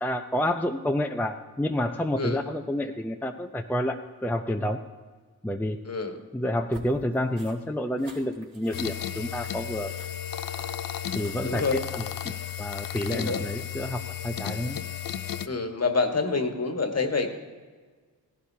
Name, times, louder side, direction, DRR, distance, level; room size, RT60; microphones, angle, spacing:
voice 1, 0.0-4.0 4.2-4.8 5.4-5.8 6.3-9.9 11.1-12.0 12.6-14.8, left 1 dB, 5° left, 4 dB, 0.6 m, -29 dB
voice 2, 5.8-6.2 11.4-11.8 13.1-13.4 15.4-17.3, left 4 dB, 40° left, 6 dB, 1.5 m, -27 dB
sound 1, 6.7-11.6, right 2 dB, 35° right, 2.9 m, -50 dB
sound 2, 8.7-15.5, left 10 dB, 55° left, 0.6 m, -34 dB
16.0 x 11.5 x 2.8 m, 1.5 s
cardioid pair, 50°, 40 cm